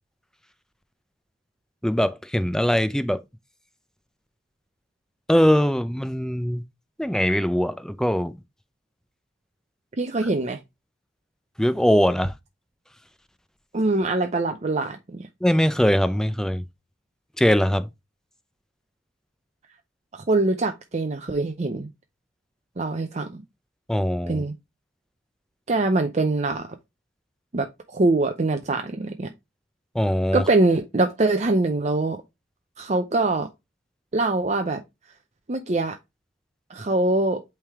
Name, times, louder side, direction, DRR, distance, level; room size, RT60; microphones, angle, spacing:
voice 1, 1.8-3.2 5.3-6.6 7.0-8.3 11.6-12.3 15.4-16.6 17.4-17.9 23.9-24.4 29.9-30.4, equal, 5° left, 0.4 m, -21 dB
voice 2, 10.0-10.6 13.7-15.3 20.1-21.9 22.8-23.4 24.3-24.5 25.7-26.7 27.5-29.3 30.3-32.2 32.8-33.5 34.1-34.8 35.5-36.0 36.7-37.4, right 2 dB, 35° right, 0.6 m, -23 dB
8.6 x 3.4 x 3.5 m
head